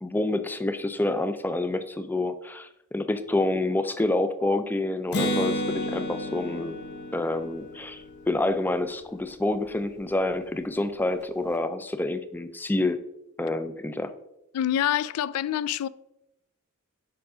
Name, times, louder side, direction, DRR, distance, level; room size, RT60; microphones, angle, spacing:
voice 1, 0.0-6.8 7.1-13.0 13.4-14.1, left 2 dB, 10° left, 0.3 m, -28 dB
Acoustic guitar, 5.1-8.8, equal, 50° left, 0.9 m, -31 dB
voice 2, 14.5-15.9, left 10 dB, 85° left, 0.3 m, -26 dB
5.1 x 4.8 x 4.8 m
head